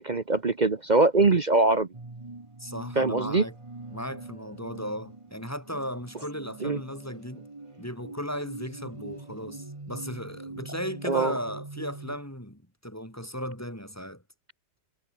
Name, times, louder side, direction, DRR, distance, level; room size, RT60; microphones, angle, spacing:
voice 1, 0.0-1.9 3.0-3.4 6.6-6.8 11.1-11.3, right 3 dB, 35° right, 0.7 m, -22 dB
sound 1, 1.9-12.2, right 2 dB, 15° right, 1.6 m, -43 dB
voice 2, 2.6-3.5 3.9-7.5 7.8-14.2, equal, 5° left, 4.6 m, -36 dB
omnidirectional pair, 2.2 m